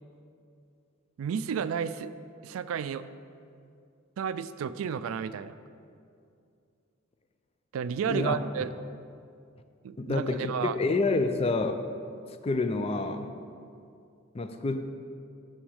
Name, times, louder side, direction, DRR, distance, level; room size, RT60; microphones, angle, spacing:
voice 1, 1.2-2.1 2.4-3.1 4.2-5.6 7.7-8.7 9.8-10.8, right 7 dB, 80° right, 14 dB, 0.3 m, -32 dB
voice 2, 8.1-8.4 10.0-11.8 12.4-13.3 14.3-14.9, left 3 dB, 30° left, 8 dB, 0.4 m, -28 dB
7.1 x 6.2 x 6.4 m, 2.4 s
head